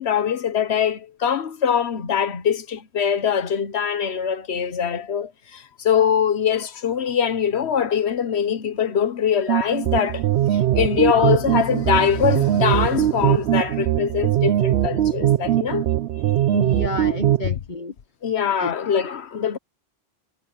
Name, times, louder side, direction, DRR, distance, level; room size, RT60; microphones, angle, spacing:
voice 1, 0.0-10.2 10.5-15.9 17.4-17.6 18.2-19.6, left 8 dB, 90° left, 1.3 m, -23 dB
sound 1, 9.5-17.5, right 12 dB, 80° right, 0.8 m, -21 dB
voice 2, 16.1-17.9 18.5-18.7, left 2 dB, 45° left, 1.4 m, -31 dB
omnidirectional pair, 1.1 m